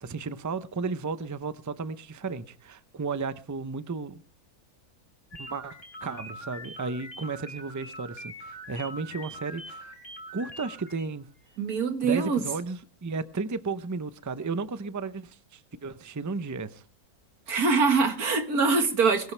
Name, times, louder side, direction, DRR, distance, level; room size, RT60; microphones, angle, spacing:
voice 1, 0.0-4.2 5.4-9.9 10.3-11.3 12.0-16.8, right 4 dB, 25° right, 0.4 m, -34 dB
sound 1, 5.3-11.1, left 1 dB, 40° left, 3.2 m, -43 dB
voice 2, 11.6-12.4 17.5-19.3, right 4 dB, 75° right, 2.1 m, -24 dB
22.0 x 12.0 x 3.4 m
omnidirectional pair, 1.6 m